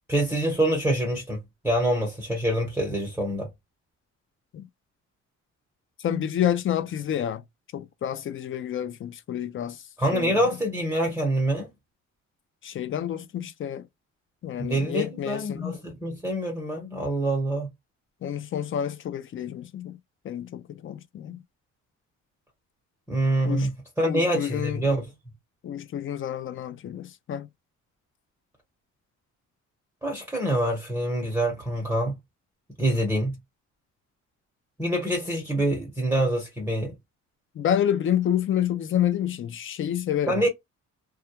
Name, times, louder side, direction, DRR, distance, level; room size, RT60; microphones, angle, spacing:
voice 1, 0.1-1.4 1.6-3.5 10.0-11.7 14.6-17.7 23.1-25.1 30.0-32.2 32.8-33.4 34.8-36.9 40.3-40.5, right 1 dB, 5° right, 1.0 m, -25 dB
voice 2, 6.0-7.4 7.7-9.8 10.1-10.5 12.6-13.9 14.4-15.8 18.2-20.0 20.2-21.4 23.4-23.7 24.0-24.9 25.6-27.5 37.5-40.5, left 10 dB, 45° left, 0.4 m, -29 dB
2.3 x 2.2 x 2.8 m
cardioid pair, 90°, 30 cm